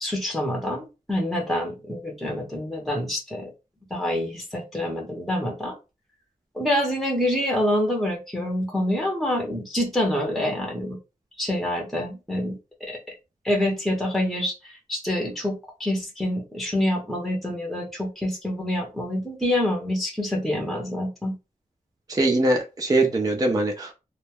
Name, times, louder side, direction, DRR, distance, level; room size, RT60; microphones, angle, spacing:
voice 1, 0.0-3.5 3.9-5.8 6.5-11.0 11.4-12.6 12.8-13.0 13.4-21.3, left 1 dB, ahead, 0 dB, 0.8 m, -26 dB
voice 2, 22.1-23.9, right 2 dB, 25° right, 2 dB, 0.5 m, -22 dB
2.2 x 2.1 x 3.3 m, 0.27 s
wide cardioid pair, 90°, 14 cm